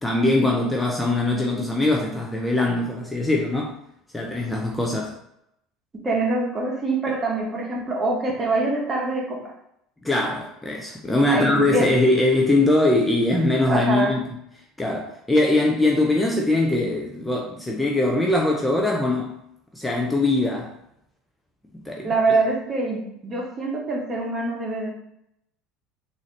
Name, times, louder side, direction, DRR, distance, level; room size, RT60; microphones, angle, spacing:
voice 1, 0.0-3.8 4.1-5.1 10.0-14.3 14.8-19.3 19.7-20.7 21.7-22.1, left 2 dB, 10° left, -1 dB, 0.6 m, -22 dB
voice 2, 6.0-9.5 11.3-11.9 13.7-14.1 22.0-24.9, right 2 dB, 30° right, -2 dB, 1.3 m, -24 dB
3.8 x 2.7 x 3.2 m, 0.78 s
hypercardioid pair, 75°, 0 cm